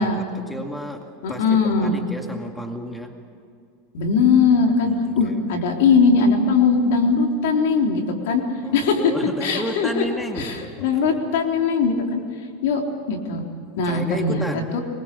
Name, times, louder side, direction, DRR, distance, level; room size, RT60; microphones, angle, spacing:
voice 1, 0.0-1.4 1.8-3.1 4.8-5.7 8.6-11.2 13.8-14.7, equal, 5° left, 4 dB, 2.2 m, -32 dB
voice 2, 1.2-2.0 3.9-8.4 8.7-9.1 9.4-10.0 10.4-12.2 12.6-12.8 13.1-13.4 13.8-14.4 14.7-14.8, left 5 dB, 75° left, 2 dB, 4.0 m, -20 dB
25.0 x 22.5 x 7.1 m, 2.4 s
supercardioid pair, 125°, 0 cm